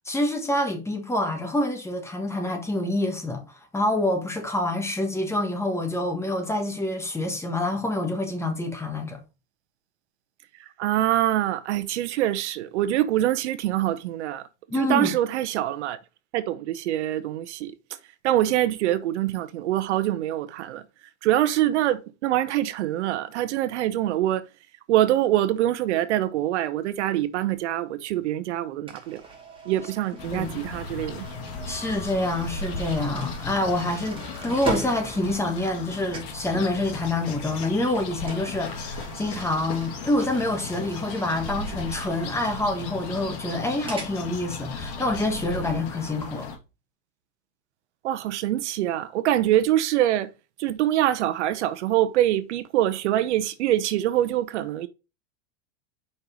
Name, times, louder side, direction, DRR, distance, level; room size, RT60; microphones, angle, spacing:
voice 1, 0.1-3.4 3.7-9.2 14.7-15.1 30.3-30.5 31.6-46.5, left 1 dB, 10° left, 1.3 m, -27 dB
voice 2, 10.8-14.4 14.7-16.0 16.3-17.7 18.2-20.8 21.2-24.4 24.9-29.2 29.7-31.3 34.5-34.6 48.0-50.3 50.6-54.9, right 13 dB, 80° right, 0.8 m, -24 dB
sound 1, 28.9-35.9 36.1-36.4 38.2-44.2, right 3 dB, 15° right, 2.2 m, -40 dB
sound 2, 30.2-46.6, left 3 dB, 55° left, 2.3 m, -36 dB
5.4 x 4.4 x 4.9 m
supercardioid pair, 125°, 34 cm